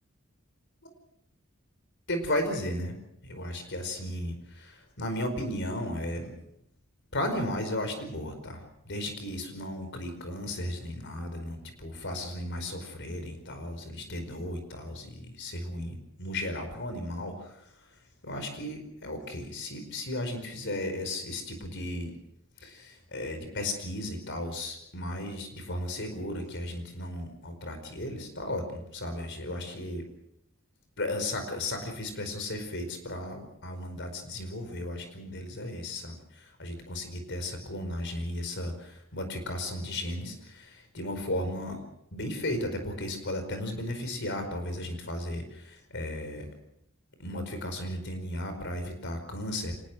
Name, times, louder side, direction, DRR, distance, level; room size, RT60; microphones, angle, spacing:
voice 1, 2.1-3.0 3.2-6.3 7.1-17.7 18.2-22.1 22.6-30.0 31.0-41.8 42.1-46.5 47.2-49.8, left 1 dB, 60° left, 7 dB, 5.0 m, -35 dB
25.5 x 19.5 x 6.3 m, 0.77 s
head